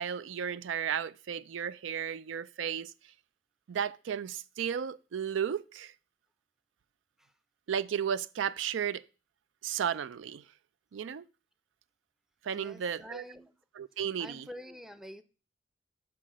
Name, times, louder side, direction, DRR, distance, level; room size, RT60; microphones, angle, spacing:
voice 1, 0.0-2.9 3.7-5.9 7.7-9.0 9.6-10.4 10.9-11.2 12.4-13.2 13.8-14.5, right 8 dB, 85° right, 0.4 m, -34 dB
voice 2, 12.5-13.5 14.2-15.2, equal, ahead, 0.5 m, -47 dB
5.8 x 5.6 x 6.2 m
head